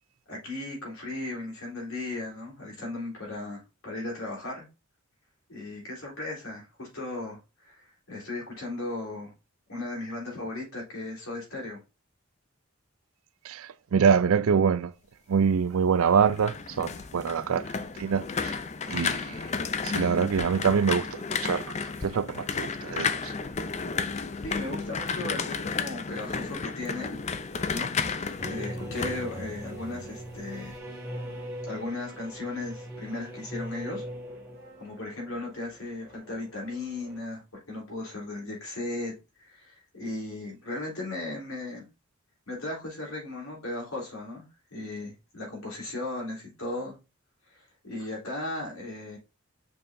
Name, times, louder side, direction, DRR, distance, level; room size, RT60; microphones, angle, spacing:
voice 1, 0.3-4.7 5.5-9.3 9.7-11.8 24.4-27.2 27.7-27.9 28.4-30.7 31.6-34.0 34.8-37.4 37.7-41.8 42.5-44.4 44.7-46.9 47.5-49.2, left 2 dB, 80° left, 3.7 m, -36 dB
voice 2, 13.4-14.9 15.3-17.7 18.0-18.6 18.9-19.4 19.8-21.6 22.0-23.3, right 6 dB, 75° right, 0.4 m, -25 dB
sound 1, 16.1-30.1 30.4-30.8, left 5 dB, 30° left, 0.4 m, -32 dB
sound 2, 28.4-37.2, equal, 5° right, 2.9 m, -41 dB
6.7 x 5.5 x 2.6 m
head